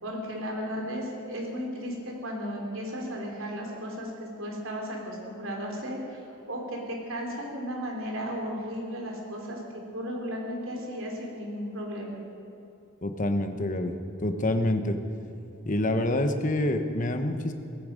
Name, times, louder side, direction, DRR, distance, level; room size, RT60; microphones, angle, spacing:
voice 1, 0.0-9.6 9.9-12.2, equal, 75° right, 0 dB, 3.4 m, -35 dB
voice 2, 13.0-13.9 14.2-15.0 15.7-17.5, left 1 dB, 40° left, 7 dB, 1.1 m, -26 dB
18.5 x 15.0 x 5.2 m, 2.9 s
head